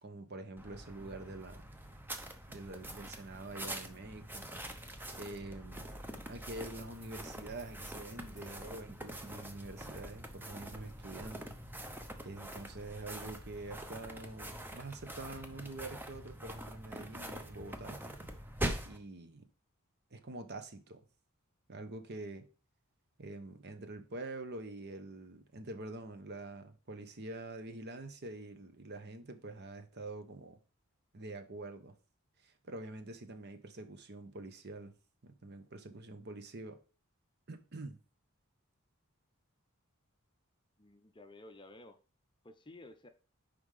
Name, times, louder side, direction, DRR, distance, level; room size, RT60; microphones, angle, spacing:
voice 1, 0.0-1.6 2.5-4.5 5.2-5.9 6.3-11.5 12.2-18.0 18.8-19.5 20.1-21.0 21.7-22.4 23.2-30.6 31.1-31.9 32.4-34.9 35.2-36.8 37.5-38.0, right 2 dB, 50° right, 0.9 m, -46 dB
sound 1, 0.6-19.0, right 1 dB, 10° right, 0.8 m, -44 dB
voice 2, 40.8-42.0 42.4-43.1, left 2 dB, 20° left, 0.6 m, -53 dB
5.6 x 5.1 x 4.9 m
head